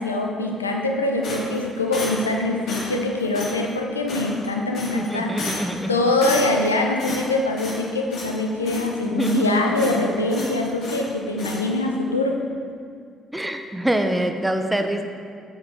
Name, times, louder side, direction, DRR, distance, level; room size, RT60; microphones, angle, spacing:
voice 1, 0.0-5.5 5.9-12.5, left 2 dB, 85° left, 2 dB, 0.5 m, -23 dB
sound 1, 1.2-2.3 2.7-3.0 3.3-3.6 4.1-4.5 4.7-5.1 5.4-5.8 6.2-6.7 7.0-7.9 8.1-8.4 8.7-9.5 9.8-10.0 10.3-11.1 11.4-11.6, left 2 dB, 55° left, 2.0 m, -32 dB
voice 2, 4.9-5.9 8.6-8.8 9.1-9.6 13.3-15.0, right 1 dB, 10° right, 6 dB, 0.8 m, -25 dB
7.5 x 7.4 x 4.6 m, 2.2 s
figure-of-eight pair, 45°, 0 cm